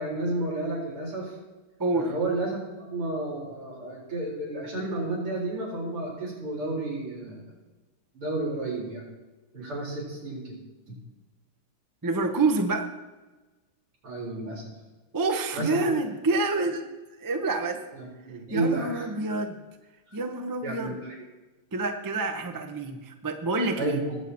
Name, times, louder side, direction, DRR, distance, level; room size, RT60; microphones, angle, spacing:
voice 1, 0.0-1.3 2.0-7.5 8.1-9.1 9.5-10.6 14.0-14.6 15.5-15.7 17.9-19.1 20.6-21.2 23.8-24.2, right 2 dB, 80° right, -4 dB, 5.4 m, -31 dB
voice 2, 1.8-2.1 12.0-12.9 15.1-16.9 17.2-17.8 18.5-19.6 20.1-20.9 21.7-24.0, right 3 dB, 25° right, 5 dB, 0.4 m, -27 dB
20.5 x 8.2 x 4.3 m, 1.2 s
omnidirectional pair, 2.4 m